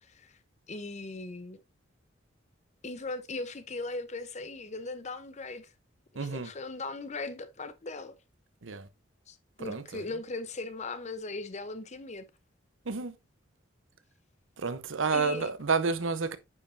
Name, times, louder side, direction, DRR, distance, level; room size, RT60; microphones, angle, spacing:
voice 1, 0.7-1.6 2.8-5.7 6.1-8.1 9.3-12.2 15.1-15.5, left 3 dB, 35° left, 0.7 m, -38 dB
voice 2, 6.1-6.5 8.6-8.9 9.6-10.0 12.8-13.2 14.6-16.4, right 4 dB, 85° right, 0.8 m, -30 dB
9.6 x 5.4 x 2.6 m
head